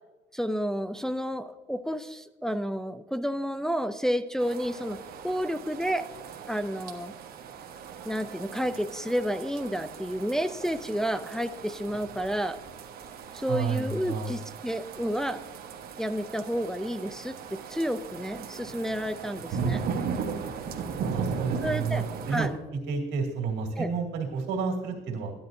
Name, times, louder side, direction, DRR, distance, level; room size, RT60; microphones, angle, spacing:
voice 1, 0.3-5.0 5.2-6.1 6.5-7.1 8.0-12.6 13.3-15.4 16.0-19.8 21.6-22.5 23.8-23.9, equal, 5° left, 9 dB, 0.4 m, -30 dB
sound 1, 4.4-22.5, right 6 dB, 65° right, 1.3 m, -37 dB
voice 2, 13.5-14.4 21.1-22.5 22.9-25.3, right 5 dB, 90° right, 0 dB, 2.3 m, -30 dB
13.5 x 10.5 x 2.7 m, 1.2 s
cardioid pair, 110°, 17 cm